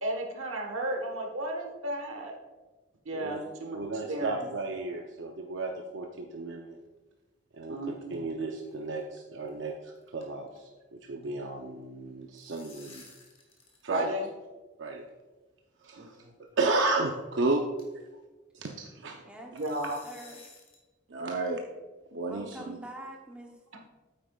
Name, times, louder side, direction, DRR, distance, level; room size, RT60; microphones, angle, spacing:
voice 1, 0.0-2.3 3.0-4.5 7.7-8.2 13.9-14.3 16.0-16.1 19.5-20.0, right 1 dB, 90° right, 3 dB, 1.4 m, -34 dB
voice 2, 3.7-6.8 7.5-13.0 13.8-14.1 14.8-15.0 15.8-16.2 16.6-17.6 18.5-19.2 21.1-21.6 22.1-22.8, right 3 dB, 70° right, 2 dB, 0.6 m, -33 dB
sound 1, 7.5-8.3 8.6-8.7 9.0-9.1 9.5-9.7 10.0-10.8 11.0-11.3 12.1-13.9 14.1-14.2 15.1-15.2 16.0-16.2 16.7-16.8 17.2-17.3 17.8-18.1 19.6-20.9, left 3 dB, 30° left, 1.4 m, -54 dB
voice 3, 20.0-20.4 22.3-23.9, right 1 dB, 5° right, -1 dB, 1.0 m, -45 dB
8.8 x 8.7 x 2.4 m, 1.2 s
head